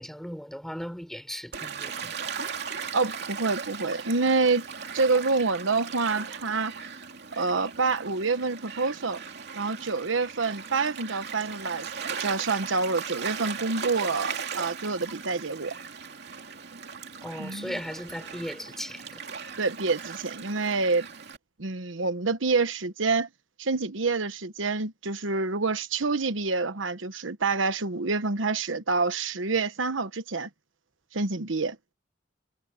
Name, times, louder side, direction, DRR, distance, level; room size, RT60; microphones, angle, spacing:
voice 1, 0.0-2.3 17.2-19.2, equal, ahead, 6.0 m, -37 dB
Gull seagull / Waves surf, 1.5-21.4, right 6 dB, 60° right, 3.0 m, -38 dB
voice 2, 2.9-4.7 4.9-6.7 7.3-9.2 9.5-11.9 12.2-15.7 17.4-17.8 19.6-21.1 21.6-23.3 23.6-30.5 31.1-31.8, right 4 dB, 85° right, 1.2 m, -27 dB
head